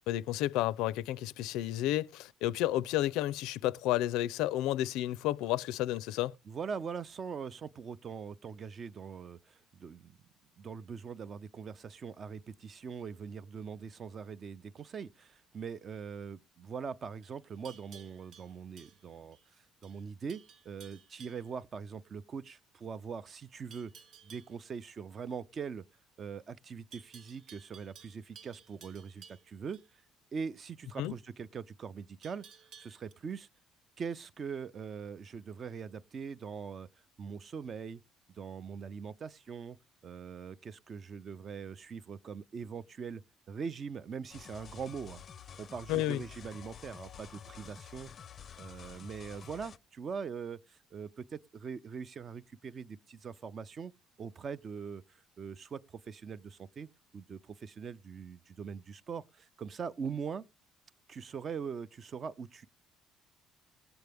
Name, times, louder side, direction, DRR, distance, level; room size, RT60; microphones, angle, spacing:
voice 1, 0.1-6.3 31.0-31.1 45.9-46.2, left 14 dB, 85° left, 0.5 m, -31 dB
voice 2, 6.5-10.2 10.6-23.9 24.2-25.8 26.2-30.0 30.3-32.4 32.8-33.5 34.0-36.9 37.2-38.0 38.3-39.8 40.0-43.2 43.5-45.2 45.6-48.1 48.6-53.9 54.2-56.9 57.1-60.4 61.1-62.7, right 6 dB, 30° right, 0.5 m, -42 dB
Livestock farm animals working animals, 17.2-19.5 19.8-20.0 20.3-21.5 23.7-24.6 26.9-29.9 32.2-33.1, right 7 dB, 45° right, 1.1 m, -56 dB
sound 1, 44.3-49.8, left 8 dB, 35° left, 0.5 m, -50 dB
19.0 x 7.9 x 3.5 m
cardioid pair, 160°, 0 cm